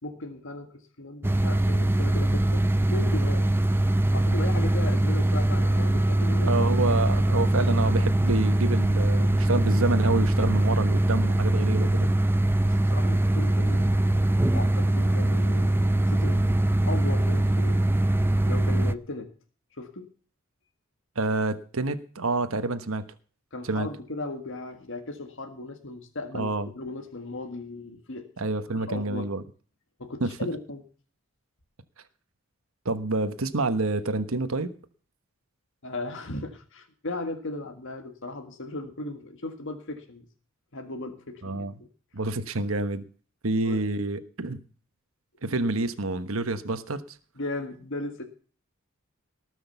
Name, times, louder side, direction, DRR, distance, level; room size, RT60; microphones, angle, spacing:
voice 1, 0.0-2.7 2.9-3.5 4.1-6.6 7.0-7.6 12.6-16.5 16.9-17.8 18.5-19.3 19.8-20.1 23.5-28.3 28.7-29.3 30.0-30.8 35.8-40.3 40.7-41.7 43.5-43.8 47.4-48.2, left 2 dB, 65° left, 5 dB, 1.8 m, -37 dB
sound 1, 1.2-18.9, right 1 dB, 10° right, 0.5 m, -22 dB
voice 2, 6.4-12.1 21.1-23.0 23.6-23.9 26.3-26.7 28.4-29.4 30.2-30.5 32.8-34.7 41.4-41.7 42.1-43.0 43.4-44.6 45.4-47.0, right 2 dB, 80° right, 10 dB, 1.2 m, -28 dB
19.0 x 6.4 x 6.9 m, 0.41 s
head